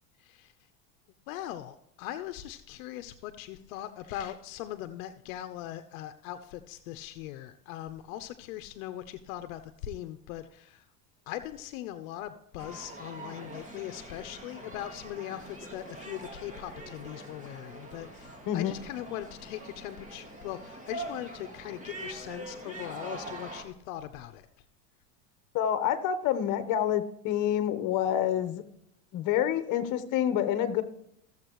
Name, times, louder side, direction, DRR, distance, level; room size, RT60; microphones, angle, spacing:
voice 1, 0.2-0.5 1.3-10.8 11.3-24.5, left 13 dB, 75° left, 9 dB, 0.9 m, -40 dB
sound 1, 12.6-23.6, right 2 dB, 20° right, 2.1 m, -43 dB
voice 2, 25.5-28.6 29.1-30.8, left 10 dB, 50° left, 11 dB, 1.2 m, -27 dB
15.0 x 7.5 x 3.1 m, 0.77 s
supercardioid pair, 120°, 41 cm